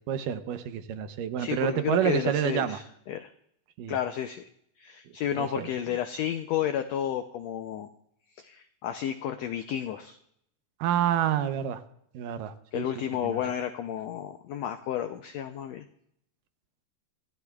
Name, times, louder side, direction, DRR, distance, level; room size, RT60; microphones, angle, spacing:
voice 1, 0.1-2.8 3.8-4.0 5.4-5.7 10.8-11.8 12.1-12.9 13.2-13.5, right 10 dB, 85° right, 10 dB, 2.5 m, -28 dB
voice 2, 1.4-3.3 3.9-4.5 4.8-7.9 8.4-10.2 12.7-15.8, left 10 dB, 85° left, 7 dB, 1.5 m, -32 dB
26.0 x 14.5 x 2.4 m, 0.73 s
omnidirectional pair, 3.8 m